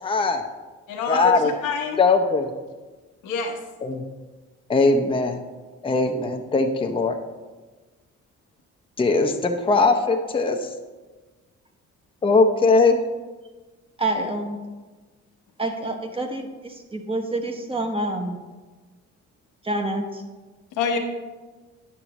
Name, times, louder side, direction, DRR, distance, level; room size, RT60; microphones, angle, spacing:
voice 1, 0.0-0.4 1.1-1.5 2.0-2.5 3.8-4.0 4.7-5.4 5.8-7.2 9.0-10.7 12.2-13.0, left 3 dB, 20° left, 4 dB, 0.6 m, -20 dB
voice 2, 0.9-2.0 3.2-3.6 20.8-21.0, left 5 dB, 85° left, 3 dB, 1.0 m, -26 dB
voice 3, 14.0-14.6 15.6-16.5 16.9-18.4 19.6-20.2, right 2 dB, 20° right, 4 dB, 0.9 m, -27 dB
9.5 x 6.1 x 3.0 m, 1.3 s
cardioid pair, 90°, 30 cm